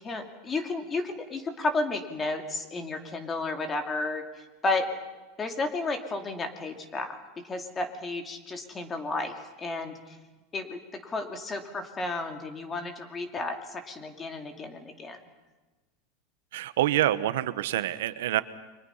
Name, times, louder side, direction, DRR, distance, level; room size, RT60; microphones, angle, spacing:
voice 1, 0.0-4.9 5.4-7.2 7.4-10.2 10.5-15.2, left 3 dB, 15° left, 6 dB, 2.4 m, -32 dB
voice 2, 16.5-18.4, right 13 dB, 85° right, 13 dB, 1.1 m, -26 dB
30.0 x 24.5 x 5.7 m, 1.2 s
supercardioid pair, 160°, 0 cm